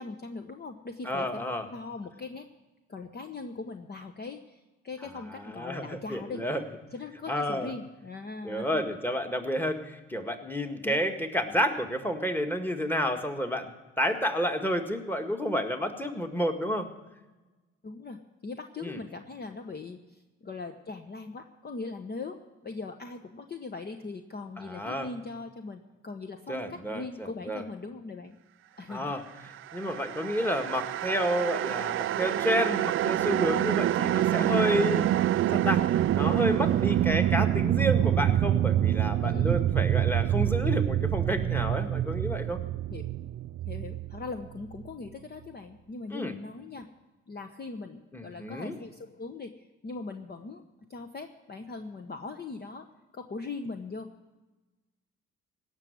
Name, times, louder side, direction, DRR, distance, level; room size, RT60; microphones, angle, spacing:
voice 1, 0.0-1.4 1.7-2.5 2.9-6.4 6.9-9.0 10.8-11.0 17.8-28.4 28.8-29.2 39.2-39.6 42.9-43.0 43.7-46.9 47.3-50.6 50.9-52.9 53.1-54.1, left 3 dB, 30° left, 6 dB, 1.0 m, -40 dB
voice 2, 1.0-1.7 5.4-6.6 7.3-7.7 8.4-13.7 14.0-16.9 18.8-19.0 24.6-25.1 26.5-27.6 28.9-29.2 29.7-35.1 35.5-42.6 46.1-46.3 48.1-48.8, equal, 5° left, 7 dB, 1.8 m, -30 dB
sound 1, 29.7-44.9, right 12 dB, 40° right, 0.4 m, -26 dB
17.5 x 6.3 x 9.5 m, 1.2 s
hypercardioid pair, 60°, 32 cm